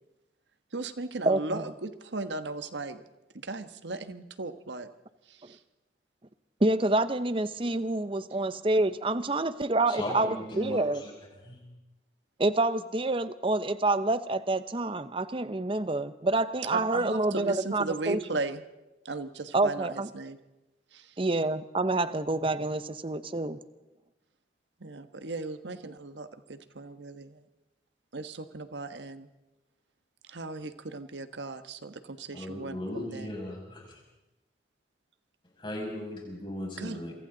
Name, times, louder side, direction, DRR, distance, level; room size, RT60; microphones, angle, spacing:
voice 1, 0.7-3.0 3.3-4.9 5.3-5.6 16.7-18.6 19.0-20.4 20.9-21.2 24.8-27.4 28.1-29.3 30.3-33.3 36.8-37.0, right 3 dB, 90° right, 10 dB, 1.3 m, -37 dB
voice 2, 1.2-1.6 6.6-11.0 12.4-18.2 19.5-20.1 21.2-23.6, right 2 dB, 30° right, 13 dB, 0.8 m, -27 dB
voice 3, 9.9-11.1 11.4-11.6 32.3-34.0 35.6-37.1, left 1 dB, 30° left, -1 dB, 6.4 m, -37 dB
27.0 x 24.0 x 4.0 m, 1.0 s
head